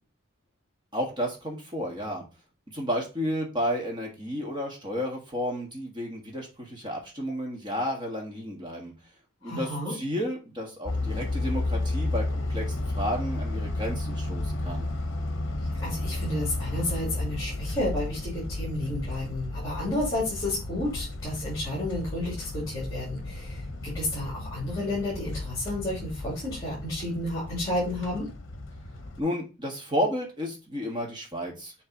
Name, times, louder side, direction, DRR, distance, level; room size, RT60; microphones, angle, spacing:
voice 1, 0.9-2.2 2.7-8.9 9.4-14.9 29.2-31.7, equal, 20° right, -1 dB, 1.7 m, -32 dB
voice 2, 9.4-9.9 15.8-28.3, left 1 dB, 20° left, -7 dB, 2.8 m, -31 dB
sound 1, 10.9-29.2, left 2 dB, 60° left, 0.9 m, -33 dB
6.6 x 3.4 x 4.4 m, 0.31 s
head